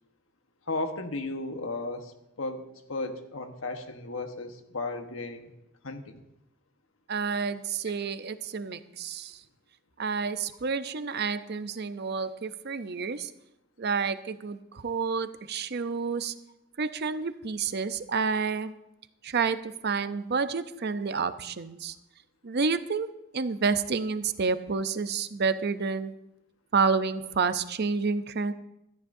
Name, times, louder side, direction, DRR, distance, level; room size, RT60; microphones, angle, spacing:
voice 1, 0.7-5.5 5.8-6.2, left 2 dB, 90° left, 6 dB, 1.3 m, -35 dB
voice 2, 7.1-9.4 10.0-13.3 13.8-16.3 16.8-18.7 19.2-22.0 22.4-23.1 23.3-26.1 26.7-28.5, right 5 dB, 55° right, 11 dB, 0.6 m, -29 dB
17.0 x 14.0 x 2.7 m, 0.87 s
head